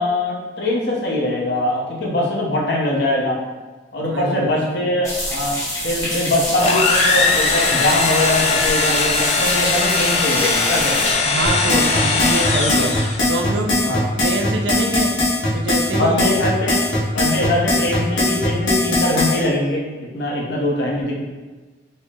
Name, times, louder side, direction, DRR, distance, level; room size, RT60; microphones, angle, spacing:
voice 1, 0.0-3.4 3.9-5.6 5.8-11.1 13.8-14.1 16.0-16.8 17.1-21.1, left 1 dB, 65° left, -3 dB, 0.7 m, -22 dB
voice 2, 4.0-4.9 11.2-13.0 13.3-15.2 15.5-16.3 17.3-17.5, right 2 dB, 70° right, 3 dB, 0.5 m, -25 dB
sound 1, 5.0-11.1, left 1 dB, 15° left, 0.9 m, -26 dB
sound 2, 6.6-13.3, left 4 dB, 35° left, 0.3 m, -19 dB
sound 3, 11.5-19.4, left 1 dB, 85° left, 1.1 m, -20 dB
4.2 x 2.0 x 3.5 m, 1.3 s
head